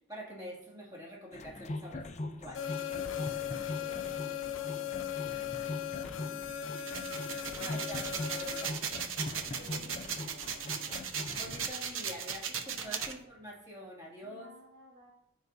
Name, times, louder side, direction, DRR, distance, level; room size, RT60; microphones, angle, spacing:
voice 1, 0.1-3.1 7.6-8.8 9.6-9.9 10.3-10.4 11.4-14.5, equal, 20° right, -5 dB, 2.4 m, -46 dB
sound 1, 1.3-11.7, left 2 dB, 35° left, 0.6 m, -41 dB
sound 2, 2.5-8.7, left 10 dB, 80° left, 0.6 m, -38 dB
voice 2, 3.2-6.8 9.6-11.1 12.6-13.3 14.2-15.1, right 1 dB, 50° right, -4 dB, 1.7 m, -56 dB
sound 3, 6.8-13.1, right 7 dB, 85° right, 0.8 m, -37 dB
14.0 x 4.7 x 2.7 m, 0.81 s
head